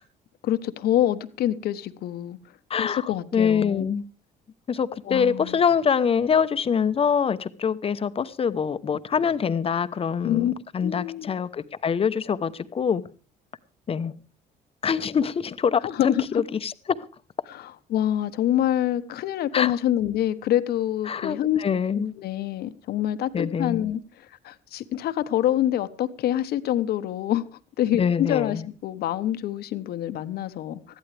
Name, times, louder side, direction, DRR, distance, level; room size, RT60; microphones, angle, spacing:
voice 1, 0.4-2.4 2.8-3.9 5.0-5.6 10.2-10.5 10.8-11.3 15.8-16.4 17.5-21.6 21.9-27.5 27.8-30.8, left 12 dB, 70° left, 1.2 m, -26 dB
voice 2, 2.7-3.0 3.3-4.0 4.7-13.0 13.9-14.1 14.8-17.0 19.5-19.7 21.1-22.1 23.3-23.9 27.9-28.6, left 7 dB, 35° left, 1.0 m, -24 dB
21.0 x 14.5 x 3.4 m
cardioid pair, 110°, 17 cm